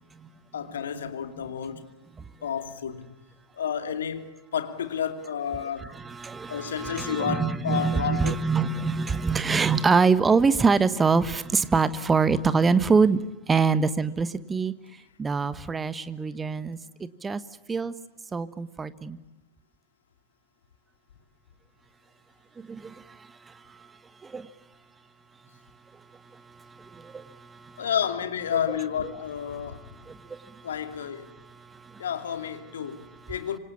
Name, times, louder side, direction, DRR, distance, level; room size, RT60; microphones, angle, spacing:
voice 1, 0.5-1.9 2.4-3.1 3.6-4.3 4.5-5.9 6.5-8.4 27.8-29.8 30.6-31.3 32.0-33.6, left 8 dB, 65° left, 2.5 m, -30 dB
voice 2, 6.0-13.2 13.5-14.7 15.2-17.4 17.7-17.9 18.3-19.2 22.6-23.0 24.2-24.5 26.8-27.2 30.1-30.4, right 5 dB, 15° right, 1.4 m, -24 dB
26.5 x 26.0 x 8.5 m
figure-of-eight pair, 90°, 0 cm